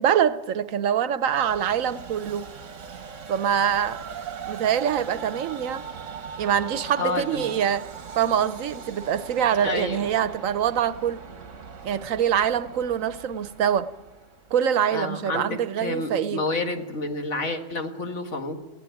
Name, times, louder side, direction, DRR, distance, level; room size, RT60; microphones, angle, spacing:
voice 1, 0.0-2.5 3.3-4.0 4.5-5.9 6.4-7.9 8.2-11.2 11.8-13.9 14.5-16.4, right 9 dB, 85° right, 1.2 m, -24 dB
Train, 1.2-14.7, right 6 dB, 70° right, 1.6 m, -40 dB
voice 2, 7.0-7.5 9.6-10.0 14.9-18.6, left 3 dB, 65° left, 2.1 m, -29 dB
19.5 x 15.5 x 9.2 m
omnidirectional pair, 1.3 m